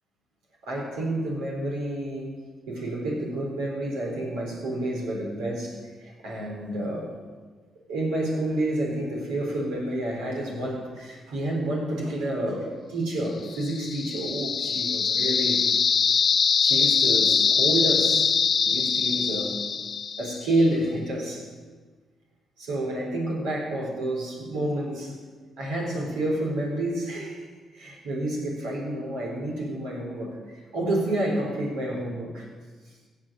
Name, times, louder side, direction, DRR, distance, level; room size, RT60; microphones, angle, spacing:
voice 1, 0.6-2.4 2.7-7.2 7.9-15.6 16.6-18.3 18.6-19.6 20.2-21.5 22.6-25.2 25.6-27.5 27.7-32.5, right 1 dB, 90° right, -1 dB, 4.0 m, -29 dB
sound 1, 13.5-20.5, left 6 dB, 50° left, 0.7 m, -23 dB
16.5 x 7.4 x 7.6 m, 1.4 s
supercardioid pair, 60°, 0 cm